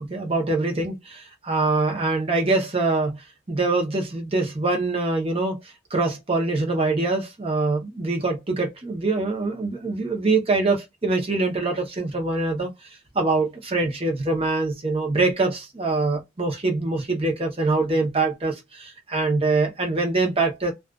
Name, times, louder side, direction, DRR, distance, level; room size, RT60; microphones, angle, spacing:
voice 1, 0.1-3.2 3.5-5.6 5.9-12.7 13.1-20.7, right 3 dB, 30° right, 0.7 m, -24 dB
2.4 x 2.3 x 2.4 m
head